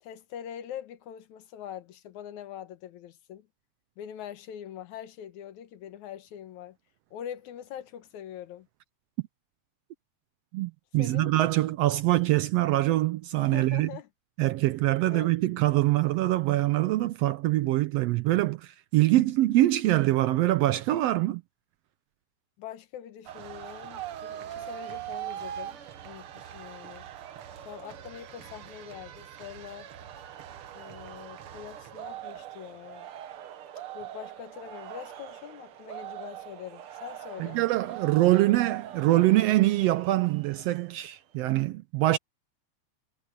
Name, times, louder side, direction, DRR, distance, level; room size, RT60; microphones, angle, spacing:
voice 1, 0.0-3.5 4.0-6.8 7.1-8.7 11.0-11.3 13.5-14.1 15.0-15.3 22.6-27.1 27.7-29.9 30.7-33.1 33.9-37.6, left 10 dB, 90° left, 2.5 m, -43 dB
voice 2, 10.5-13.9 14.4-21.4 37.4-42.2, right 16 dB, 80° right, 1.5 m, -24 dB
sound 1, 23.2-41.0, right 11 dB, 60° right, 1.7 m, -42 dB
omnidirectional pair, 3.3 m